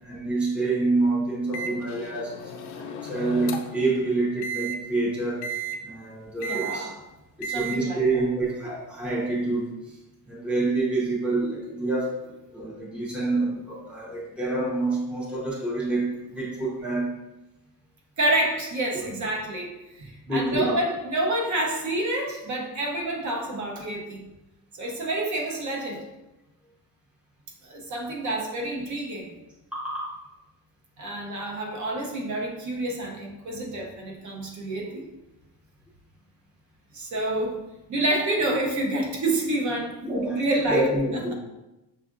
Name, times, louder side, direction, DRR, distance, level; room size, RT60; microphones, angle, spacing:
voice 1, 0.0-5.4 5.8-6.9 7.4-9.6 10.3-17.1 18.9-19.0 20.3-20.8 29.7-30.2 40.0-41.3, right 2 dB, 5° right, -5 dB, 0.6 m, -27 dB
Microwave oven, 1.5-3.9 4.4-4.7 5.4-5.8 6.4-6.8 7.4-7.8, right 3 dB, 70° left, 0.6 m, -33 dB
voice 2, 6.4-7.0 7.4-8.3 18.2-24.3 24.7-26.1 27.6-29.3 31.0-35.1 36.9-37.6 37.9-40.0 40.3-40.9, right 1 dB, 45° right, 0 dB, 0.7 m, -28 dB
6.1 x 2.4 x 2.5 m, 0.98 s
cardioid pair, 155°, 41 cm